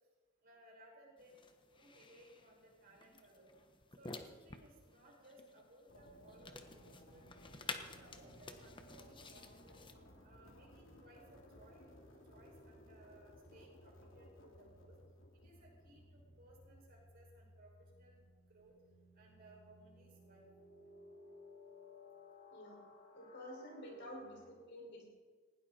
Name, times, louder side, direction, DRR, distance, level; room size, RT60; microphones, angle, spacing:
voice 1, 0.4-3.6 4.0-7.5 7.8-9.8 10.2-11.9 12.3-15.0 15.3-18.2 18.5-18.7 19.1-20.5, right 1 dB, 50° right, -2 dB, 6.1 m, -62 dB
sound 1, 1.2-9.9, left 4 dB, 25° left, 1.1 m, -52 dB
sound 2, 5.9-24.5, left 1 dB, 80° left, 2.8 m, -59 dB
voice 2, 23.1-25.1, equal, 60° left, -1 dB, 5.5 m, -50 dB
19.5 x 17.5 x 4.3 m, 1.4 s
head